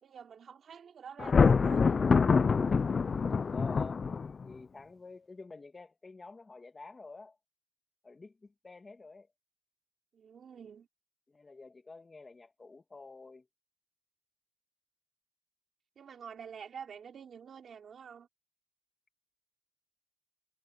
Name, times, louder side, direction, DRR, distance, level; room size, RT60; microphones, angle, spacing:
voice 1, 0.0-2.2 10.1-10.9 15.9-18.3, right 7 dB, 75° right, 3.1 m, -48 dB
Thunder, 1.2-4.5, left 5 dB, 50° left, 0.6 m, -25 dB
voice 2, 3.5-4.1 4.4-7.4 8.0-9.3 11.3-13.5, left 3 dB, 35° left, 2.6 m, -49 dB
cardioid pair, 85°, 0 cm